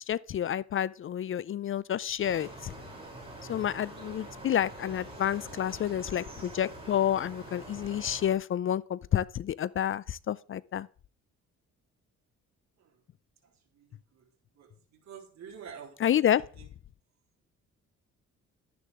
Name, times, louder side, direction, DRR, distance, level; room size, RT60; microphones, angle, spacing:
voice 1, 0.1-2.7 3.5-10.9 16.0-16.4, left 10 dB, 45° left, 0.4 m, -29 dB
sound 1, 2.2-8.3, right 1 dB, 20° right, 7.3 m, -45 dB
voice 2, 15.1-16.0, right 7 dB, 65° right, 3.8 m, -45 dB
12.5 x 10.0 x 3.7 m
cardioid pair, 90°, 30 cm